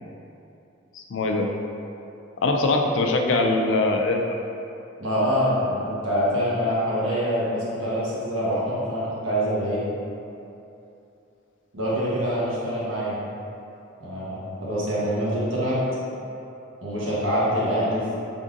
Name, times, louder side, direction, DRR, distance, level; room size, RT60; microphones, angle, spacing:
voice 1, 1.1-1.5 2.4-4.3, left 2 dB, 70° left, 2 dB, 0.4 m, -22 dB
voice 2, 5.0-9.8 11.7-13.2 14.0-15.8 16.8-18.1, equal, 85° right, -8 dB, 1.2 m, -25 dB
3.7 x 3.5 x 2.6 m, 2.8 s
head